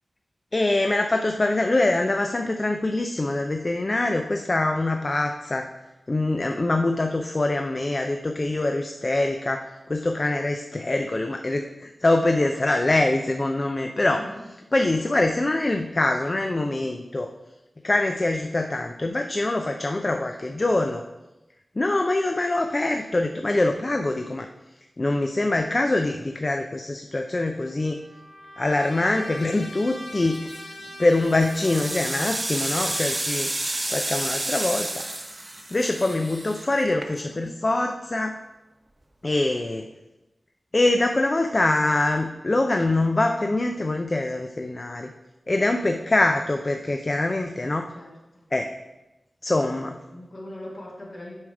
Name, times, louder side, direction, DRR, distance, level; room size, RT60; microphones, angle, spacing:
voice 1, 0.5-5.7 6.1-14.2 14.7-17.3 17.8-21.0 21.8-24.5 25.0-28.0 28.6-30.5 31.0-33.5 33.9-35.0 35.7-38.4 39.2-39.9 40.7-45.1 45.5-47.9 48.5-48.7 49.4-50.0, left 2 dB, 35° left, 5 dB, 0.4 m, -24 dB
voice 2, 14.1-14.5 47.8-48.4 49.9-51.4, left 1 dB, 55° left, -4 dB, 1.7 m, -41 dB
Trumpet, 27.5-32.4, left 1 dB, 80° left, 1.7 m, -42 dB
sound 1, 30.3-30.7 31.2-37.5, right 1 dB, 30° right, 0.8 m, -30 dB
7.2 x 4.9 x 4.7 m, 1.0 s
wide cardioid pair, 105°, 0 cm